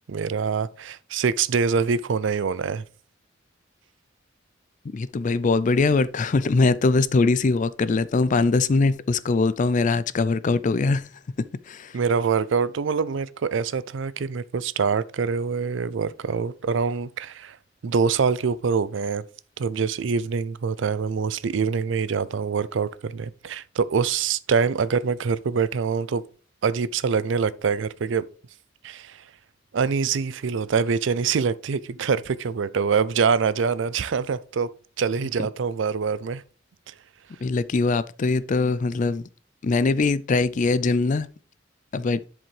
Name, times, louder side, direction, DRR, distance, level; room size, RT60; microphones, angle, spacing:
voice 1, 0.1-2.8 11.9-17.6 17.8-19.2 19.6-26.2 26.6-28.2 28.8-29.2 29.7-34.7 35.0-36.4 36.9-37.0, right 5 dB, 65° right, 0.4 m, -25 dB
voice 2, 4.9-11.0 11.7-12.0 35.4-35.5 37.4-39.3 39.6-41.3 41.9-42.2, left 3 dB, 40° left, 0.4 m, -22 dB
11.0 x 5.0 x 3.3 m
head